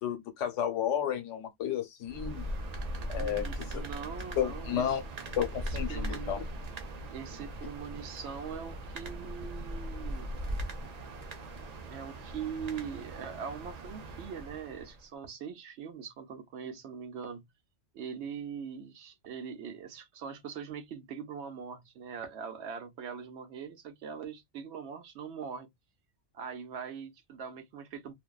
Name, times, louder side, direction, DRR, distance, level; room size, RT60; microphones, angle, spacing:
voice 1, 0.0-2.4 3.1-3.9 4.4-5.0 5.4-6.4, left 9 dB, 90° left, 1.1 m, -32 dB
sound 1, 2.0-15.0, right 1 dB, 50° right, 0.5 m, -39 dB
voice 2, 3.1-5.0 5.6-6.4 7.1-10.4 11.9-17.5 17.9-25.7 26.3-28.1, right 7 dB, 75° right, 0.9 m, -42 dB
2.5 x 2.1 x 2.2 m
omnidirectional pair, 1.2 m